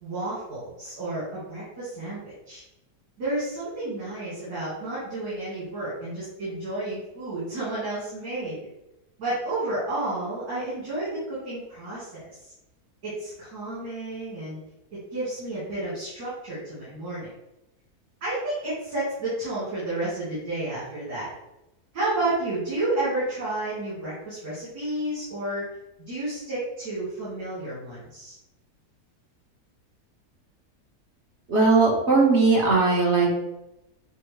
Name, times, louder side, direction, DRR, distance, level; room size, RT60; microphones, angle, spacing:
voice 1, 0.0-2.6 3.2-8.6 9.2-12.3 13.0-14.6 14.9-17.3 18.2-21.3 21.9-25.7 26.1-28.4, right 2 dB, 70° right, -11 dB, 2.1 m, -31 dB
voice 2, 31.5-33.3, right 3 dB, 45° right, -3 dB, 1.3 m, -19 dB
6.0 x 2.1 x 3.1 m, 0.92 s
omnidirectional pair, 1.7 m